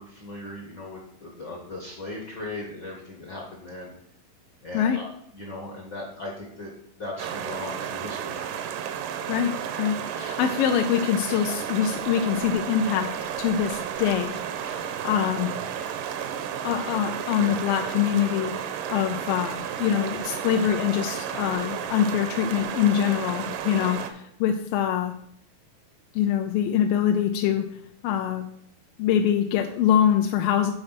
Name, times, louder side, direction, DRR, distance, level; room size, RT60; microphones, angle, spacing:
voice 1, 0.0-3.9 4.6-5.1 5.3-6.7 7.0-8.4 17.4-17.6, left 2 dB, 55° left, -2 dB, 1.2 m, -38 dB
sound 1, 7.2-24.1, right 9 dB, 75° right, 2.1 m, -32 dB
voice 2, 9.8-13.1 13.4-14.3 14.6-15.5 16.6-18.5 18.9-25.1 26.1-27.6 28.0-28.5 29.0-30.7, left 9 dB, 80° left, 5 dB, 2.2 m, -24 dB
8.8 x 4.4 x 5.7 m, 0.71 s
omnidirectional pair, 4.1 m